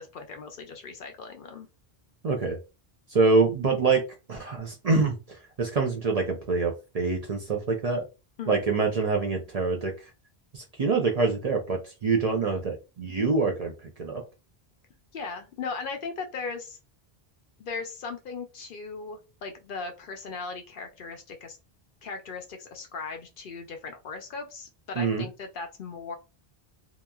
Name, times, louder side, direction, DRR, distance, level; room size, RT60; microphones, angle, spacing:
voice 1, 0.0-1.7 8.4-8.6 15.1-16.8 17.6-21.6 22.0-26.2, left 4 dB, 60° left, 5 dB, 0.7 m, -38 dB
voice 2, 2.2-2.6 3.1-4.0 4.3-5.2 5.6-8.0 8.5-9.9 10.5-13.7 14.0-14.2 25.0-25.3, right 4 dB, 50° right, 1 dB, 0.5 m, -25 dB
2.9 x 2.4 x 2.2 m, 0.28 s
omnidirectional pair, 1.0 m